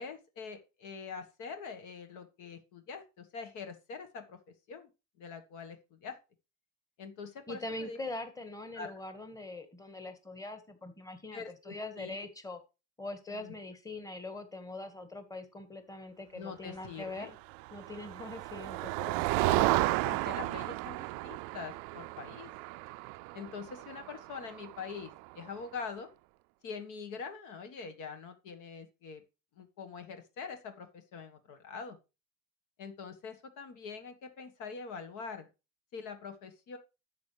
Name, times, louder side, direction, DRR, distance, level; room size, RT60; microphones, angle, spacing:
voice 1, 0.0-4.4 4.7-4.9 5.2-6.2 7.0-8.0 8.7-8.9 11.3-12.3 13.3-13.5 16.3-17.3 19.4-22.5 23.3-26.1 26.6-29.2 29.6-32.0 32.8-35.5 35.9-36.8, left 5 dB, 60° left, 7 dB, 1.5 m, -44 dB
voice 2, 7.5-12.6 13.0-17.3 17.7-19.2, left 2 dB, 10° left, 8 dB, 1.6 m, -42 dB
Motor vehicle (road), 17.5-25.3, right 22 dB, 70° right, 0.5 m, -33 dB
10.5 x 7.2 x 3.3 m, 0.29 s
supercardioid pair, 85°, 34 cm